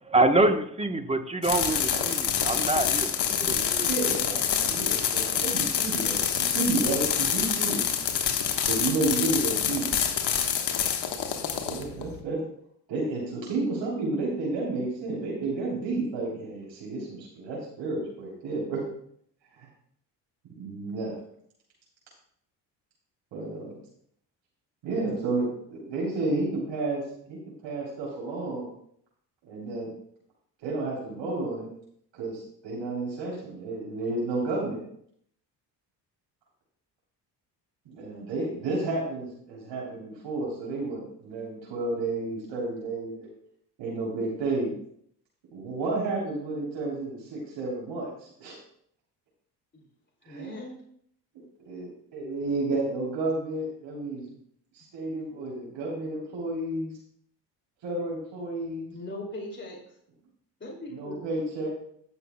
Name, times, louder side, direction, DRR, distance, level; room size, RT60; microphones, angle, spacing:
voice 1, 0.1-3.9 4.8-4.9, right 2 dB, 10° right, 7 dB, 1.2 m, -26 dB
sound 1, 1.4-12.2, left 8 dB, 55° left, 1.4 m, -27 dB
voice 2, 3.4-7.9 8.7-9.9 11.6-12.4 12.9-18.8 19.5-19.7 20.6-21.1 23.3-23.8 24.8-27.0 27.3-28.7 29.4-29.9 30.6-31.7 32.1-34.8 37.9-43.3 43.8-44.7 45.5-48.6 50.2-50.7 51.7-54.3 54.7-56.9 57.8-58.9 60.9-61.7, right 2 dB, 60° right, -5 dB, 3.6 m, -31 dB
voice 3, 50.2-50.8 58.9-59.9 60.6-61.2, left 1 dB, 20° left, -1 dB, 2.7 m, -39 dB
18.5 x 6.9 x 2.3 m, 0.66 s
hypercardioid pair, 55°, 50 cm